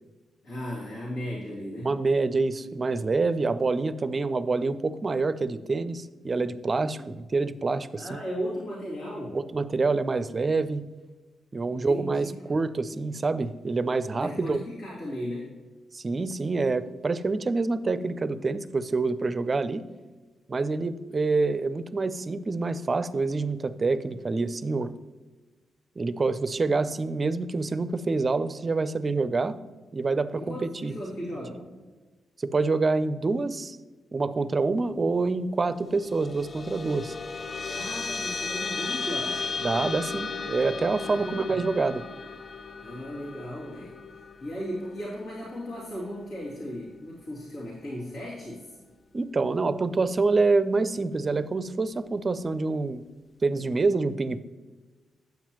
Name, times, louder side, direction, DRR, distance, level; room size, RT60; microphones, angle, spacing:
voice 1, 0.4-1.9 6.8-7.1 8.0-9.4 11.7-12.3 14.2-15.5 30.3-31.7 37.7-39.5 41.0-41.6 42.8-48.8, equal, 75° left, -8 dB, 2.7 m, -36 dB
voice 2, 1.8-8.2 9.3-10.8 11.5-14.6 15.9-19.9 20.5-24.9 26.0-29.6 29.9-30.6 30.8-30.9 32.4-33.8 34.1-37.2 39.6-42.0 49.1-53.0 53.4-54.4, right 3 dB, 40° right, 14 dB, 0.5 m, -26 dB
sound 1, 35.8-46.6, left 4 dB, 45° left, 0.4 m, -35 dB
9.2 x 7.2 x 3.0 m, 1.3 s
supercardioid pair, 50°, 0 cm